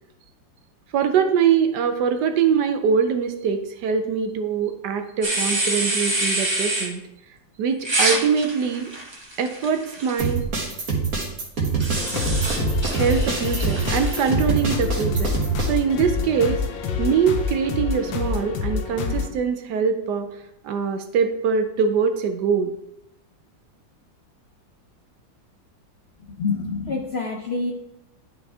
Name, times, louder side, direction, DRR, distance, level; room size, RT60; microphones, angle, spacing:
voice 1, 0.9-7.0 7.6-8.9 9.4-10.5 12.9-15.3 15.6-16.6 17.0-22.7, right 6 dB, 70° right, 7 dB, 1.2 m, -23 dB
sound 1, 5.2-6.9 7.8-10.3 11.8-14.3, right 2 dB, 20° right, 0.8 m, -26 dB
sound 2, 10.2-15.7, right 5 dB, 50° right, 1.8 m, -25 dB
sound 3, 11.9-19.3, left 6 dB, 90° left, 1.5 m, -27 dB
voice 2, 26.4-27.7, left 4 dB, 50° left, 0 dB, 0.7 m, -26 dB
11.0 x 4.3 x 3.5 m, 0.83 s
omnidirectional pair, 2.0 m